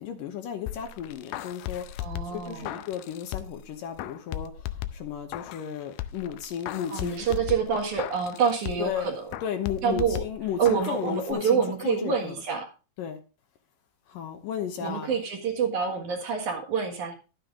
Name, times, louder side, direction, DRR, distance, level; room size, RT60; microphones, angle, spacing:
voice 1, 0.0-7.2 8.8-9.1 9.4-12.4 13.0-13.2 14.1-15.1, left 9 dB, 70° left, 2.4 m, -34 dB
sound 1, 0.7-3.7 4.0-5.7 6.0-9.0 9.3-11.0 11.3-11.4, left 13 dB, 85° left, 1.8 m, -37 dB
voice 2, 2.0-2.8 6.9-9.2 9.8-10.2 10.6-12.7 14.8-17.1, right 6 dB, 60° right, 2.6 m, -27 dB
12.0 x 8.9 x 3.7 m
omnidirectional pair, 4.5 m